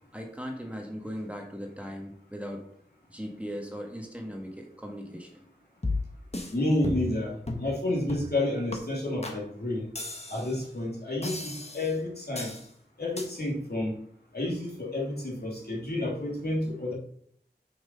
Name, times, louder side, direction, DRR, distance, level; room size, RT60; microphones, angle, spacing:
voice 1, 0.1-2.6 3.1-5.4, equal, 5° right, 1 dB, 1.7 m, -38 dB
sound 1, 5.8-6.5 6.8-7.2 7.5-7.7 8.1-8.4 8.7-8.8 9.2-9.4 10.0-10.6 11.2-11.9 12.4-12.7 13.2-13.3, left 2 dB, 35° left, 1.6 m, -34 dB
voice 2, 6.5-9.9 10.3-12.5 13.0-14.0 14.3-16.9, left 1 dB, 60° left, -3 dB, 2.8 m, -30 dB
6.3 x 6.1 x 5.3 m, 0.64 s
wide cardioid pair, 40°, 18 cm